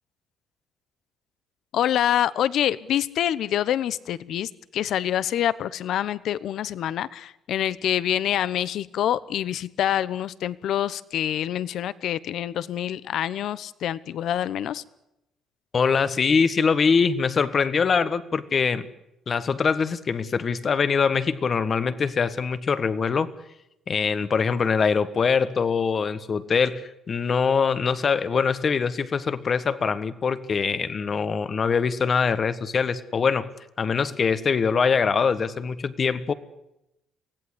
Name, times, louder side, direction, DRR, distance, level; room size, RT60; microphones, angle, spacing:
voice 1, 1.7-14.8, left 11 dB, 65° left, 18 dB, 1.0 m, -26 dB
voice 2, 15.7-18.9 19.3-23.3 23.9-33.5 33.8-36.3, left 5 dB, 35° left, 14 dB, 1.5 m, -23 dB
24.5 x 17.0 x 9.9 m, 0.86 s
cardioid pair, 130°, 0 cm